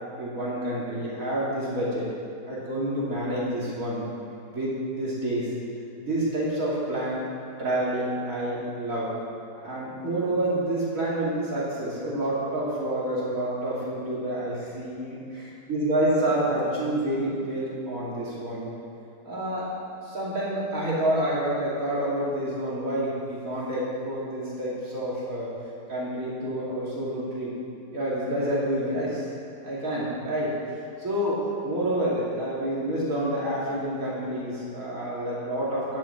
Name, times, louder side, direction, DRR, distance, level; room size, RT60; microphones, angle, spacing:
voice 1, 0.2-2.1 2.5-4.0 4.5-5.5 6.0-7.2 7.6-9.1 9.6-15.2 15.7-18.7 19.2-19.7 20.0-25.5 25.9-27.5 27.9-29.3 29.6-30.6 31.0-36.0, right 1 dB, 50° right, -7 dB, 3.5 m, -28 dB
11.5 x 7.2 x 7.2 m, 2.4 s
omnidirectional pair, 1.9 m